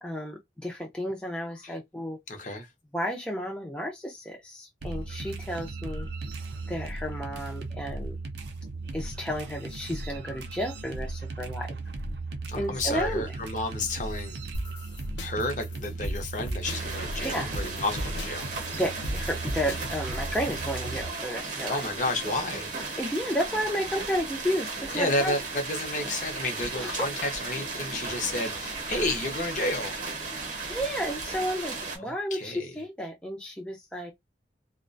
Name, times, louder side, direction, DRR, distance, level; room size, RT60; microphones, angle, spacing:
voice 1, 0.0-2.2 2.9-6.1 6.7-8.2 8.9-11.8 12.6-13.3 17.2-17.5 18.7-21.8 23.0-25.3 26.7-27.1 30.7-34.1, equal, 5° left, 0.4 m, -32 dB
voice 2, 2.3-2.7 12.5-14.4 15.2-18.5 21.7-22.7 24.9-30.0 32.0-32.7, left 2 dB, 45° left, 0.6 m, -31 dB
sound 1, 4.8-21.1, right 2 dB, 70° right, 0.5 m, -37 dB
sound 2, 14.5-20.9, equal, 80° left, 0.7 m, -38 dB
sound 3, 16.6-32.0, right 3 dB, 45° right, 0.8 m, -35 dB
2.3 x 2.1 x 2.5 m
head